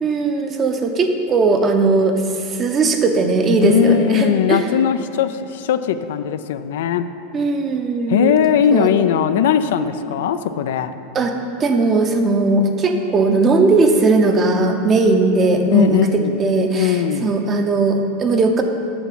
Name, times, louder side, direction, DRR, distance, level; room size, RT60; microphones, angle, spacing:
voice 1, 0.0-4.6 7.3-8.4 8.7-8.9 11.1-11.3 11.6-16.0 16.4-18.6, right 3 dB, 25° right, 5 dB, 0.8 m, -18 dB
voice 2, 3.6-7.0 8.1-10.9 15.7-16.4 16.7-17.3, left 9 dB, 80° left, 10 dB, 0.4 m, -19 dB
7.0 x 5.9 x 7.5 m, 2.6 s
supercardioid pair, 145°, 0 cm